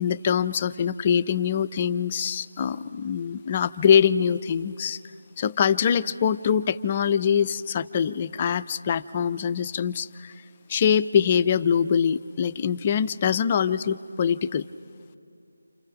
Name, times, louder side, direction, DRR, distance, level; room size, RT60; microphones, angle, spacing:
voice 1, 0.0-5.0 5.4-10.3 10.7-14.7, left 7 dB, 25° left, 12 dB, 0.5 m, -23 dB
29.0 x 27.5 x 5.2 m, 2.6 s
figure-of-eight pair, 160°, 0 cm